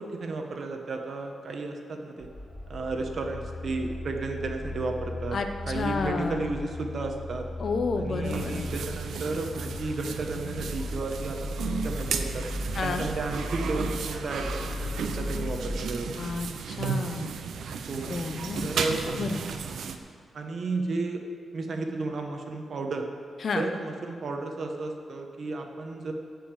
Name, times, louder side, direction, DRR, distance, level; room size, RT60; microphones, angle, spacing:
voice 1, 0.0-2.3 2.7-5.4 5.7-7.5 8.0-12.4 12.8-16.2 17.9-18.1 18.6-19.1 19.6-19.9 20.3-21.2 21.5-23.1 23.5-26.1, right 3 dB, 50° right, 3 dB, 1.2 m, -33 dB
sound 1, 2.2-16.5, left 2 dB, 25° left, 3.1 m, -37 dB
voice 2, 5.3-6.5 7.6-8.7 12.7-13.1 16.2-17.3 18.1-18.7 19.2-19.4 23.4-23.6, left 4 dB, 45° left, 6 dB, 0.9 m, -31 dB
sound 2, 8.2-20.0, right 6 dB, 80° right, 0.8 m, -34 dB
15.5 x 5.6 x 7.5 m, 2.3 s
wide cardioid pair, 150°, 0 cm